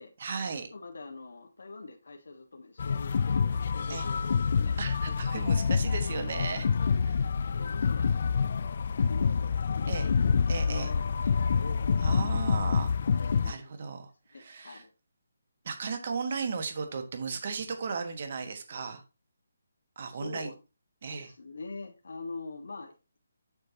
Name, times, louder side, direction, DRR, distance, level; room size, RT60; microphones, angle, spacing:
voice 1, 0.2-0.7 3.9-4.1 4.8-6.7 7.0-7.3 9.9-10.1 10.5-10.9 12.0-12.9 13.4-14.8 15.6-19.0 19.9-20.5 21.0-21.3, right 5 dB, 40° right, 1.5 m, -36 dB
voice 2, 0.7-4.8 5.3-5.5 6.4-6.5 7.5-8.7 9.0-12.0 12.3-12.7 13.3-13.7 14.3-14.9 20.1-20.5 21.1-22.9, left 3 dB, 75° left, 1.5 m, -44 dB
sound 1, 2.8-13.5, left 6 dB, 40° left, 0.3 m, -27 dB
8.7 x 6.6 x 2.9 m
hypercardioid pair, 175°, 0 cm